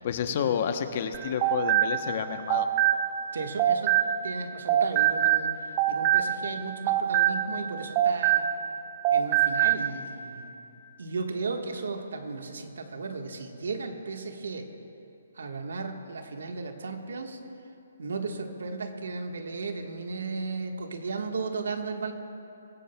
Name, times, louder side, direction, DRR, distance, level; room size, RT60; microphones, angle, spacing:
voice 1, 0.0-2.7, left 8 dB, 45° left, 8 dB, 0.8 m, -30 dB
sound 1, 1.1-4.4 4.7-8.8 9.0-9.9, right 11 dB, 30° right, 0.5 m, -24 dB
voice 2, 3.3-5.5 5.9-8.5 9.1-10.5 11.0-14.7 15.4-17.4 18.0-22.1, right 4 dB, 75° right, 4 dB, 1.4 m, -35 dB
22.5 x 16.0 x 2.2 m, 2.9 s
hypercardioid pair, 150°, 0 cm